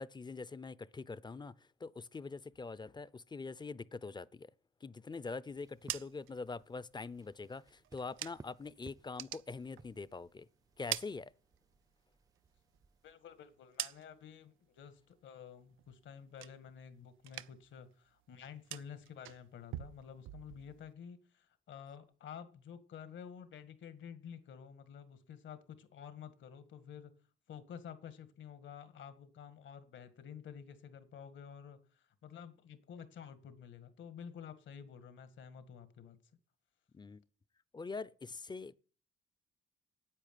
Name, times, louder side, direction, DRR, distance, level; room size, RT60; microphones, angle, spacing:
voice 1, 0.0-4.5 4.8-10.5 10.8-11.3 36.9-37.2 37.7-38.8, left 4 dB, 20° left, 0.6 m, -44 dB
sound 1, 5.5-13.1, right 3 dB, 20° right, 0.6 m, -61 dB
sound 2, 5.6-8.7 9.0-10.3 10.6-11.9 12.3-14.4 14.8-15.3 15.6-16.9 17.2-17.8 18.1-20.9, right 14 dB, 85° right, 0.6 m, -47 dB
voice 2, 13.0-27.1 27.5-36.2, left 8 dB, 70° left, 1.9 m, -51 dB
9.9 x 8.5 x 9.3 m
cardioid pair, 90°, 20 cm